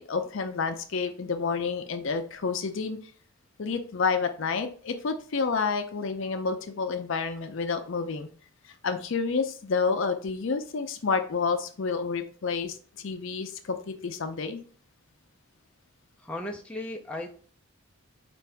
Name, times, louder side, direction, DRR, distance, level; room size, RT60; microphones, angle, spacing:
voice 1, 0.0-3.0 3.6-8.3 8.8-14.6, left 5 dB, 60° left, 8 dB, 0.5 m, -29 dB
voice 2, 16.2-17.5, left 1 dB, 5° left, 0 dB, 0.4 m, -36 dB
4.5 x 2.6 x 3.3 m, 0.42 s
head